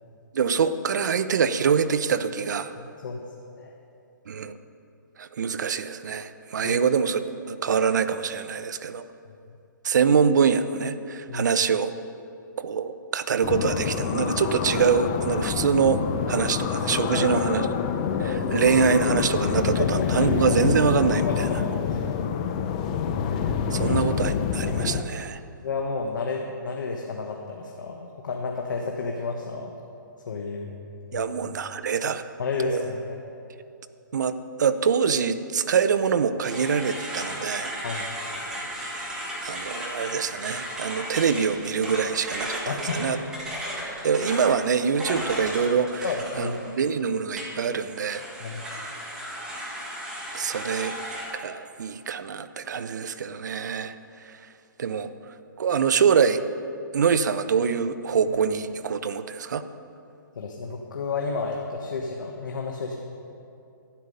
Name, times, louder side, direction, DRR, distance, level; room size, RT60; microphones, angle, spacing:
voice 1, 0.3-2.7 4.3-4.5 5.2-9.0 9.8-11.9 12.6-16.0 16.3-17.7 18.2-21.5 23.7-25.4 31.1-32.2 32.6-32.9 34.1-37.7 39.4-43.2 44.0-46.1 46.4-48.2 50.3-50.9 51.3-53.9 54.3-54.4 54.8-55.1 55.6-56.4 56.9-59.7, right 6 dB, 60° right, 11 dB, 0.6 m, -24 dB
sound 1, 13.4-25.0, left 7 dB, 20° left, 0.4 m, -26 dB
voice 2, 19.5-20.3 21.2-21.6 21.9-22.0 22.3-22.4 25.6-29.7 30.3-30.7 31.1-31.3 32.4-33.2 37.8-38.1 42.7-43.2 46.0-46.6 48.4-48.6 60.3-63.0, left 4 dB, 65° left, 1 dB, 1.2 m, -31 dB
sound 2, 36.4-46.9 47.4-51.3, equal, 5° right, 1.6 m, -35 dB
11.5 x 9.7 x 5.4 m, 2.6 s
hypercardioid pair, 170°, 11 cm